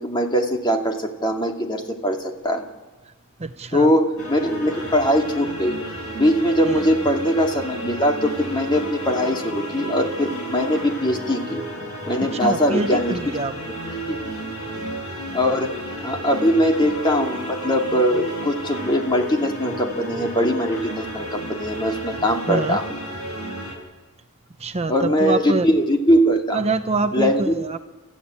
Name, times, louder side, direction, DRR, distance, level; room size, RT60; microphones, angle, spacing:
voice 1, 0.0-2.7 3.7-5.7 6.1-11.6 12.1-13.1 14.1-14.2 15.3-15.7 16.0-22.8 24.9-26.6 27.1-27.5, equal, 20° left, 2 dB, 2.4 m, -21 dB
voice 2, 3.4-3.9 6.6-6.8 12.3-13.5 22.5-22.8 24.6-25.7 26.5-27.8, right 3 dB, 30° right, 8 dB, 0.7 m, -25 dB
sound 1, 4.2-23.7, right 1 dB, 80° left, 7.7 m, -32 dB
28.5 x 14.5 x 9.8 m, 1.2 s
head